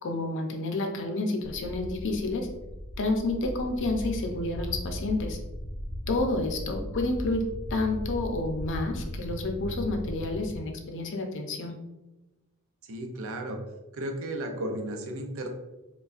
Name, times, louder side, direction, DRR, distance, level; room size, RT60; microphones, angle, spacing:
voice 1, 0.0-2.5 3.0-5.4 6.1-11.7, left 2 dB, 55° left, 3 dB, 0.6 m, -30 dB
sound 1, 1.4-10.5, equal, 25° left, 0.7 m, -37 dB
voice 2, 12.9-13.6 13.9-15.5, right 1 dB, 65° right, 4 dB, 0.5 m, -34 dB
4.7 x 2.2 x 2.5 m, 1.1 s
head